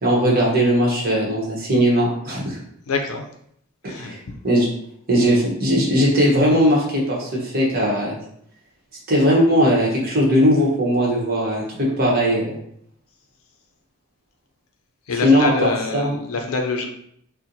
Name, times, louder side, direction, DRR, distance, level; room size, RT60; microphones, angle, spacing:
voice 1, 0.0-2.6 3.9-4.2 4.4-4.7 5.1-8.2 9.1-12.6 15.2-16.1, equal, 45° right, -3 dB, 1.0 m, -18 dB
voice 2, 2.9-3.3 3.9-4.1 15.1-16.9, left 4 dB, 80° left, 3 dB, 0.5 m, -25 dB
4.2 x 2.1 x 2.6 m, 0.69 s
head